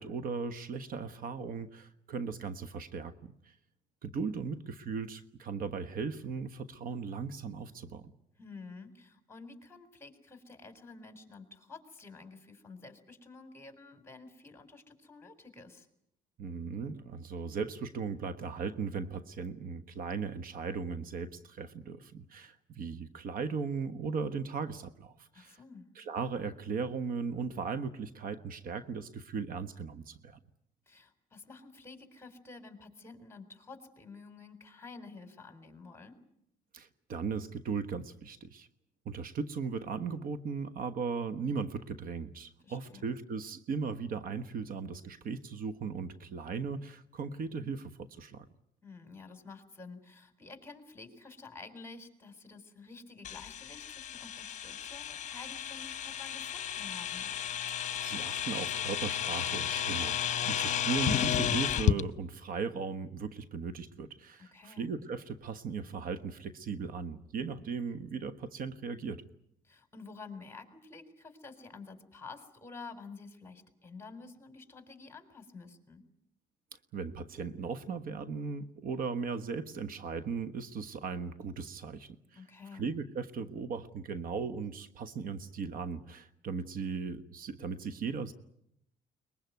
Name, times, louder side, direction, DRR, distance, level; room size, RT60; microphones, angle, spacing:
voice 1, 0.0-3.5 4.0-8.1 16.4-25.6 25.9-30.4 36.7-38.7 39.0-48.5 58.0-69.2 76.9-82.4 82.7-88.3, right 5 dB, 55° right, 12 dB, 1.3 m, -37 dB
voice 2, 8.4-15.9 25.3-25.8 30.9-36.2 42.6-43.1 48.8-57.3 64.4-64.9 69.6-76.0 82.3-82.9, left 4 dB, 15° left, 8 dB, 4.3 m, -50 dB
sound 1, 53.2-62.0, left 10 dB, 45° left, 1.0 m, -33 dB
23.0 x 21.0 x 9.5 m, 0.74 s
cardioid pair, 110°, 17 cm